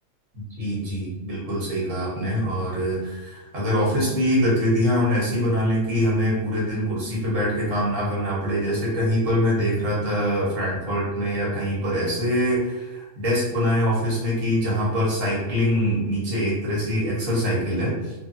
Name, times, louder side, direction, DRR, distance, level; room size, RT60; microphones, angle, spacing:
voice 1, 0.3-18.1, equal, 85° right, -6 dB, 1.6 m, -24 dB
3.4 x 2.3 x 2.6 m, 1.1 s
omnidirectional pair, 1.3 m